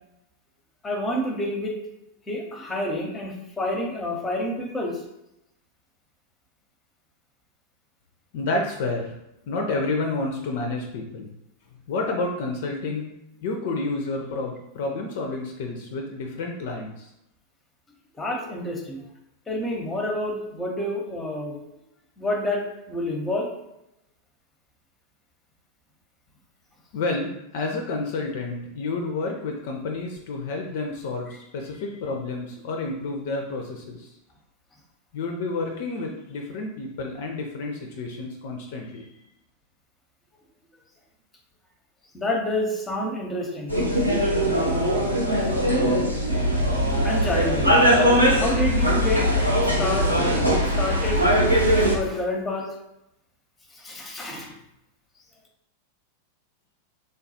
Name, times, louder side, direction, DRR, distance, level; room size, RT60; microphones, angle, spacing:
voice 1, 0.8-1.7 2.3-5.0 18.1-19.0 19.5-21.6 22.2-23.5 42.1-43.8 47.0-47.7 48.3-49.3 49.6-50.1 50.6-51.2 51.5-52.7 53.7-54.5, left 1 dB, 15° left, 1 dB, 0.6 m, -28 dB
voice 2, 8.3-9.1 9.5-11.3 11.9-13.1 13.4-17.1 26.9-34.1 35.1-39.1, left 3 dB, 50° left, 2 dB, 0.4 m, -30 dB
sound 1, 43.7-52.0, equal, 90° right, 0.5 m, -21 dB
3.4 x 2.3 x 2.7 m, 0.86 s
figure-of-eight pair, 90°, 0 cm